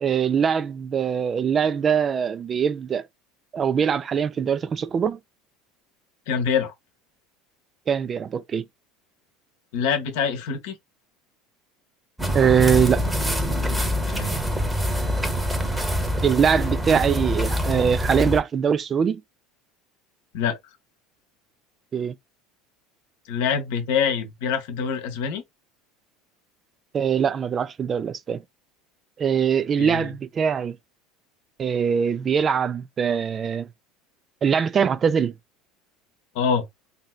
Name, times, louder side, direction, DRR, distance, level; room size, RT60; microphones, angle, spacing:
voice 1, 0.0-3.1 3.5-5.2 7.9-8.6 12.3-13.0 16.2-19.2 21.9-22.1 26.9-28.4 29.2-30.8 31.6-33.7 34.4-35.3, right 7 dB, 35° right, 0.3 m, -22 dB
voice 2, 6.3-6.7 9.7-10.8 14.1-14.4 20.3-20.6 23.3-25.4 29.8-30.1 36.3-36.7, left 7 dB, 70° left, 0.8 m, -25 dB
sound 1, 12.2-18.4, equal, 10° right, 0.8 m, -25 dB
3.1 x 2.7 x 2.3 m
hypercardioid pair, 85°, 0 cm